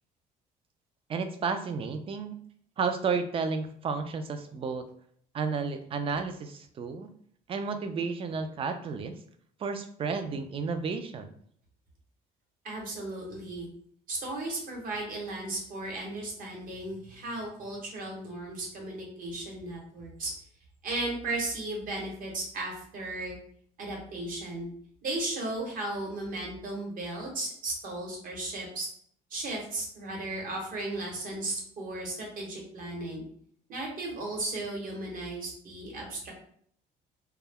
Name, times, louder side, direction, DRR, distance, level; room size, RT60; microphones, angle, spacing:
voice 1, 1.1-2.4 2.8-4.9 5.3-7.1 7.5-9.2 9.6-11.3, right 5 dB, 35° right, 8 dB, 0.4 m, -32 dB
voice 2, 12.6-13.7 14.1-20.3 20.8-23.4 23.8-24.7 25.0-28.9 29.3-33.2 33.7-36.3, right 2 dB, 55° right, -1 dB, 1.1 m, -35 dB
2.2 x 2.1 x 3.4 m, 0.62 s
cardioid pair, 110°, 17 cm